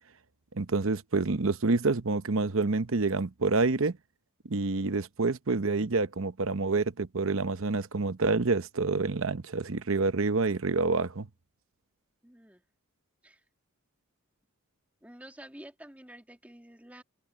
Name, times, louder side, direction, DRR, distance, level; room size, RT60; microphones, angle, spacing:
voice 1, 0.5-4.0 4.5-11.3, right 3 dB, 60° right, 0.9 m, -27 dB
voice 2, 12.2-12.6 13.2-13.4 15.0-17.0, right 1 dB, 5° right, 2.8 m, -49 dB
head